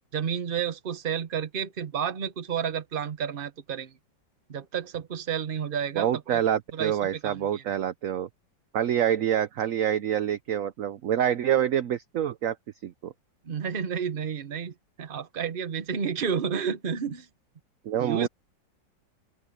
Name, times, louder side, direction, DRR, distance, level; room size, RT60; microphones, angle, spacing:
voice 1, 0.1-3.9 4.5-6.4 6.7-7.0 7.2-7.6 13.4-17.3 18.0-18.3, right 7 dB, 35° right, 1.0 m, -31 dB
voice 2, 6.0-8.3 8.7-12.6 12.8-13.1 17.9-18.3, right 10 dB, 60° right, 0.9 m, -26 dB
open air
omnidirectional pair, 2.0 m